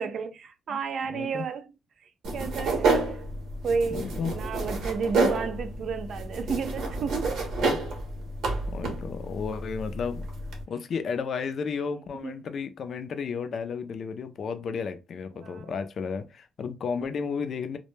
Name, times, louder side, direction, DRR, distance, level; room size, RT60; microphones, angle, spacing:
voice 1, 0.0-1.7 2.3-3.2 3.6-4.1 4.3-7.5 12.1-12.4 15.4-15.8, right 5 dB, 60° right, 0.4 m, -32 dB
voice 2, 0.7-1.5 3.9-4.4 7.6-7.8 8.7-10.2 10.7-17.8, left 5 dB, 55° left, 0.4 m, -33 dB
sound 1, 2.2-10.6, right 3 dB, 75° right, 0.8 m, -30 dB
2.1 x 2.1 x 3.1 m
cardioid pair, 90°, 0 cm